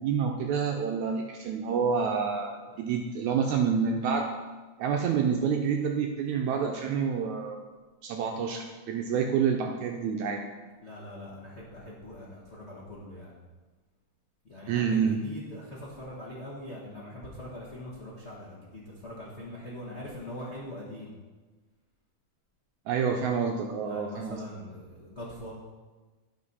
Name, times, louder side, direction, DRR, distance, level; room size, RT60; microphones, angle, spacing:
voice 1, 0.0-4.3 4.8-7.6 8.0-10.4 14.7-15.2 22.9-24.4, right 6 dB, 75° right, 2 dB, 1.8 m, -28 dB
voice 2, 10.8-13.4 14.4-21.1 23.8-25.5, left 1 dB, 80° left, -6 dB, 0.6 m, -42 dB
10.5 x 5.1 x 5.4 m, 1.3 s
omnidirectional pair, 3.7 m